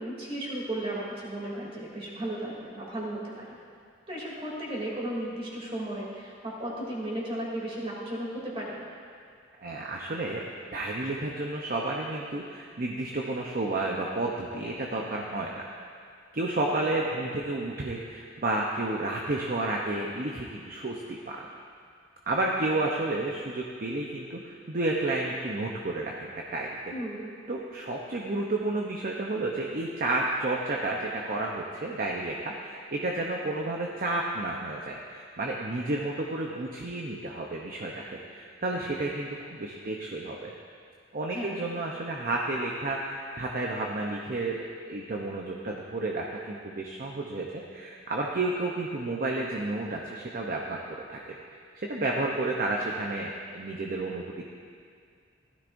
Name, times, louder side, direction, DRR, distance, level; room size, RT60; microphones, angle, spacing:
voice 1, 0.0-3.6 4.1-8.8 26.9-27.3 41.3-41.6, right 1 dB, 30° right, -5 dB, 2.9 m, -35 dB
voice 2, 9.6-10.4 10.7-15.6 16.3-21.4 22.3-26.9 27.5-40.5 41.1-51.2 51.8-54.5, right 2 dB, 45° right, -1 dB, 0.8 m, -31 dB
15.5 x 13.0 x 2.6 m, 2.2 s
head